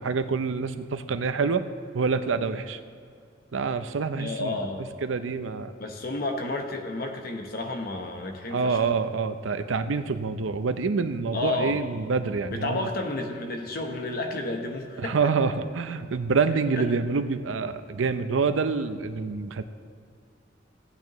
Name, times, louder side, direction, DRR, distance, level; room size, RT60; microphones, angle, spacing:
voice 1, 0.0-1.6 1.9-2.8 3.5-4.6 5.0-5.7 8.5-12.9 15.0-19.6, right 4 dB, 85° right, 10 dB, 0.5 m, -26 dB
voice 2, 4.2-4.9 5.8-8.8 11.3-11.8 12.5-15.3 16.8-16.9, left 2 dB, 50° left, 3 dB, 0.9 m, -31 dB
16.0 x 9.2 x 3.0 m, 2.3 s
head